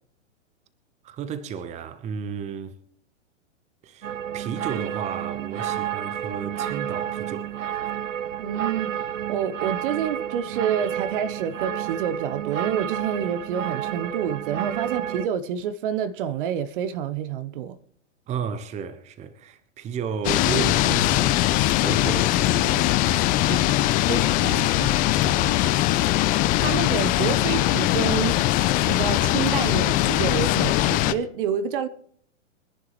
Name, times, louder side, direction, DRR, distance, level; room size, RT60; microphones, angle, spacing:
voice 1, 1.0-2.8 3.8-7.6 18.3-21.5 21.8-24.0 25.2-25.8, right 6 dB, 20° right, 0.9 m, -33 dB
sound 1, 4.0-15.3, right 10 dB, 85° right, 0.6 m, -30 dB
voice 2, 8.4-8.9 9.3-17.7 24.1-25.0 26.6-28.5 28.9-31.9, right 8 dB, 45° right, 1.0 m, -28 dB
sound 2, 20.2-31.1, left 15 dB, 25° left, 0.6 m, -21 dB
23.5 x 11.0 x 3.1 m
figure-of-eight pair, 115°, 37 cm